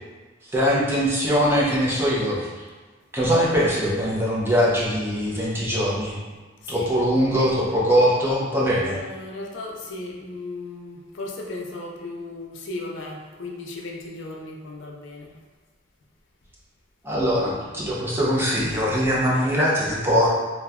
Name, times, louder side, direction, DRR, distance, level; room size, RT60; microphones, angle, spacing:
voice 1, 0.4-2.5 3.1-6.2 6.7-9.0 17.0-20.3, equal, 10° right, -6 dB, 0.5 m, -22 dB
voice 2, 6.6-6.9 8.8-15.4, left 2 dB, 80° left, -1 dB, 0.4 m, -36 dB
2.9 x 2.1 x 2.3 m, 1.3 s
head